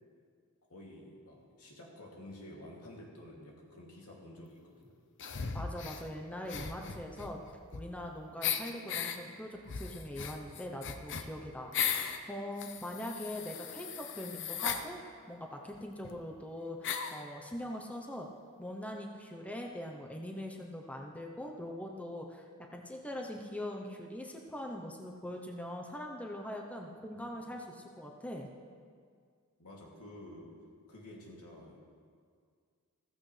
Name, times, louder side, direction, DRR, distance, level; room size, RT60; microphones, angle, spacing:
voice 1, 0.7-4.9 6.8-7.1 8.3-8.4 12.8-12.9 27.0-27.4 29.6-30.6 30.9-31.8, left 1 dB, 85° left, -3 dB, 2.6 m, -51 dB
sound 1, 5.2-6.0 6.5-8.1 8.4-9.2 9.7-12.2 12.6-14.8 15.7-15.8 16.0-16.1 16.8-17.2, left 7 dB, 55° left, 0.7 m, -37 dB
voice 2, 5.5-7.4 7.7-15.0 15.3-18.3 18.6-28.5, left 1 dB, 5° left, 1 dB, 0.8 m, -42 dB
15.0 x 15.0 x 3.3 m, 2.1 s
head